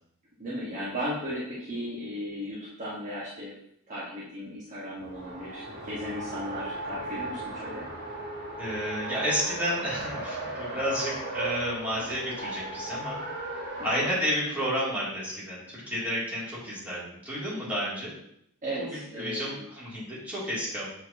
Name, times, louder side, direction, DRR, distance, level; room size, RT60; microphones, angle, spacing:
voice 1, 0.4-3.5 3.9-7.9 13.8-14.0 18.6-19.6, equal, 35° right, -8 dB, 1.2 m, -36 dB
Race car auto racing, 5.0-14.2, right 2 dB, 50° right, 2.3 m, -36 dB
voice 2, 8.6-13.2 13.8-18.1 19.2-20.9, equal, 5° right, -8 dB, 2.4 m, -31 dB
7.8 x 4.6 x 2.7 m, 0.74 s
head